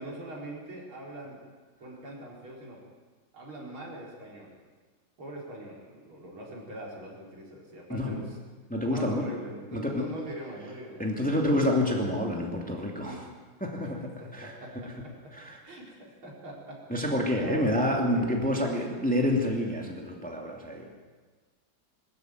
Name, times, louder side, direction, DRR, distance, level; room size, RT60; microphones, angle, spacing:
voice 1, 0.0-1.4 1.8-2.8 3.3-4.6 5.2-8.4 8.9-11.1 13.0-13.2 14.2-14.7 15.0-15.1 15.6-17.0 17.4-18.2, right 1 dB, 75° right, -3 dB, 5.4 m, -42 dB
voice 2, 8.7-9.3 9.7-10.1 11.0-13.2 13.6-14.5 15.3-15.6 16.9-20.9, left 1 dB, 5° left, 0 dB, 2.5 m, -28 dB
21.5 x 13.0 x 9.4 m, 1.4 s
omnidirectional pair, 2.3 m